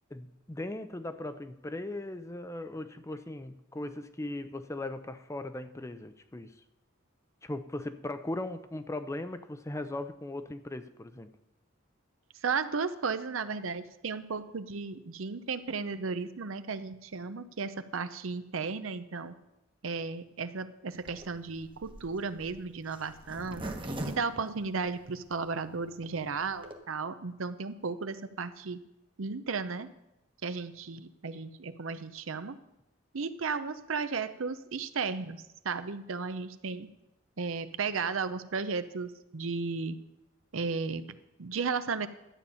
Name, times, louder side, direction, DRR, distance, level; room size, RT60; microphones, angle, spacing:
voice 1, 0.1-6.6 7.4-11.3, left 2 dB, 15° left, 0.5 m, -38 dB
voice 2, 12.4-19.3 19.8-23.8 24.1-28.8 29.2-29.9 30.4-32.6 33.1-36.9 37.4-40.0 40.5-42.1, right 4 dB, 75° right, 0.7 m, -34 dB
Zipper (clothing), 21.0-25.3 25.8-25.9 26.1-26.2 26.4-26.8, right 1 dB, 25° right, 1.1 m, -40 dB
12.0 x 8.5 x 5.6 m
head